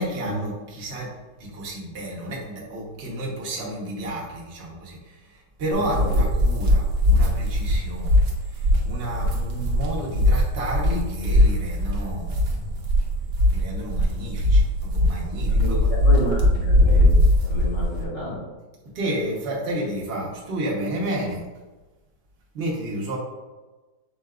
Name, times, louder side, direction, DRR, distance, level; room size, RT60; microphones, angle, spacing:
voice 1, 0.0-12.7 13.5-15.9 18.9-21.5 22.5-23.2, right 1 dB, 45° right, -5 dB, 1.1 m, -31 dB
voice 2, 5.7-6.2 15.5-17.1 17.4-18.4, left 1 dB, 90° left, -7 dB, 2.5 m, -30 dB
sound 1, 5.7-18.0, left 1 dB, 75° right, 1.4 m, -20 dB
5.8 x 4.0 x 2.3 m, 1.2 s
omnidirectional pair, 1.9 m